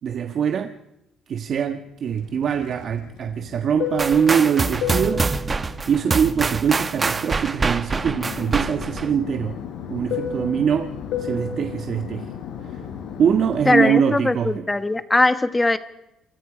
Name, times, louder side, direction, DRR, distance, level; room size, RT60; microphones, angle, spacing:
voice 1, 0.0-0.7 1.3-5.3 5.9-9.6 9.9-10.9 11.2-12.3 12.6-12.8 13.2-14.7, right 7 dB, 55° right, 1.4 m, -23 dB
Fixed-wing aircraft airplane, 2.2-7.6 7.9-13.7, left 6 dB, 80° left, 5.4 m, -32 dB
sound 1, 4.0-9.1, right 4 dB, 25° right, 1.1 m, -25 dB
voice 2, 13.6-15.8, left 2 dB, 15° left, 1.3 m, -20 dB
28.0 x 23.5 x 5.1 m
cardioid pair, 95°, 0 cm